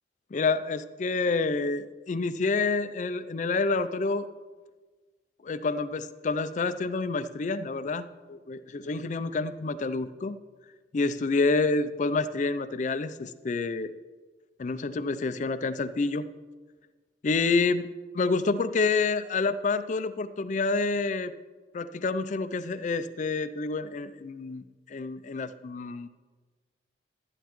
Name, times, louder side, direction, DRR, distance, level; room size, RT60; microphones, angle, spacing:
voice 1, 0.3-4.3 5.4-10.4 10.9-13.9 14.6-16.3 17.2-17.9 18.1-21.3 21.7-26.1, left 3 dB, 40° left, 14 dB, 0.4 m, -28 dB
11.5 x 10.0 x 3.0 m, 1.4 s
head